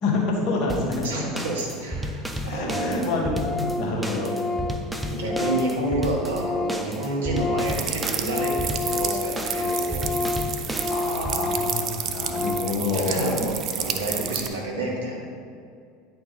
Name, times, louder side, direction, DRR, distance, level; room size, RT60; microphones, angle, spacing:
voice 1, 0.0-1.1 2.4-4.4 10.9-13.3, left 3 dB, 50° left, -2 dB, 1.8 m, -27 dB
sound 1, 0.7-11.4, equal, 5° right, 0.7 m, -33 dB
voice 2, 1.0-3.1 5.0-10.1 12.3-12.4 12.9-15.2, right 1 dB, 75° right, -2 dB, 1.4 m, -29 dB
Organ, 1.7-1.8 2.0-2.1 2.3-2.4 2.7-3.1 3.3-6.9 7.2-12.9, left 3 dB, 30° left, 0.4 m, -30 dB
sound 2, 7.7-14.5, right 8 dB, 45° right, 0.6 m, -31 dB
9.6 x 4.5 x 4.0 m, 2.4 s
figure-of-eight pair, 75°, 0 cm